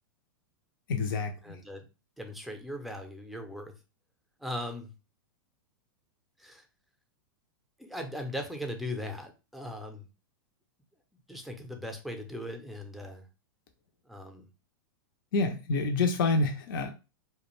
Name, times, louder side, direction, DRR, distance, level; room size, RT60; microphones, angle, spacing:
voice 1, 0.9-1.6 15.3-16.9, left 3 dB, 65° left, 4 dB, 0.5 m, -28 dB
voice 2, 1.4-1.9 2.2-3.7 4.4-4.9 6.4-6.6 7.8-10.1 11.3-13.3 14.0-14.5, left 1 dB, ahead, 4 dB, 0.5 m, -39 dB
2.4 x 2.2 x 3.0 m, 0.30 s
hypercardioid pair, 110°, 12 cm